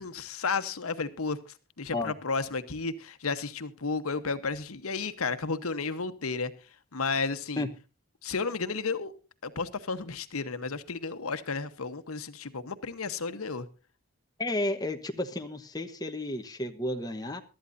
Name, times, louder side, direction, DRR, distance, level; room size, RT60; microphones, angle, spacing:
voice 1, 0.0-6.5 6.9-7.7 8.2-9.1 9.4-13.7, left 4 dB, 90° left, 1.1 m, -32 dB
voice 2, 14.4-17.4, left 1 dB, 20° left, 1.1 m, -32 dB
22.5 x 12.5 x 2.6 m
head